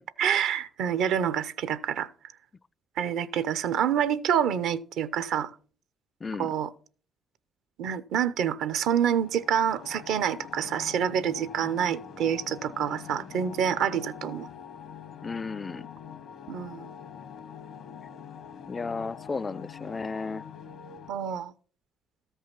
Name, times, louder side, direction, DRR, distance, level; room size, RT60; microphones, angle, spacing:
voice 1, 0.2-2.1 3.0-5.5 6.4-6.7 7.8-14.5 16.5-16.9 21.1-21.5, right 8 dB, 75° right, 0.7 m, -27 dB
voice 2, 6.2-6.5 15.2-15.9 18.7-20.4, left 4 dB, 30° left, 0.4 m, -34 dB
sound 1, 9.2-21.1, left 8 dB, 65° left, 0.9 m, -44 dB
13.5 x 5.6 x 5.9 m
supercardioid pair, 65°, 0 cm